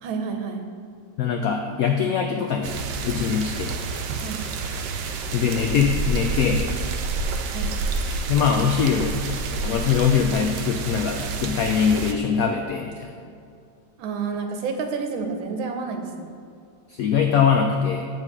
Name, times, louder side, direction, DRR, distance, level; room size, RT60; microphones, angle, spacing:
voice 1, 0.0-0.7 4.2-4.4 7.5-7.7 14.0-16.3, right 5 dB, 90° right, 5 dB, 1.6 m, -29 dB
voice 2, 1.2-3.8 5.3-6.6 8.3-9.1 9.5-13.1 16.9-18.0, left 7 dB, 90° left, 3 dB, 0.7 m, -22 dB
sound 1, 2.6-12.1, right 3 dB, 70° right, 1.2 m, -29 dB
8.9 x 4.1 x 6.0 m, 2.3 s
omnidirectional pair, 2.1 m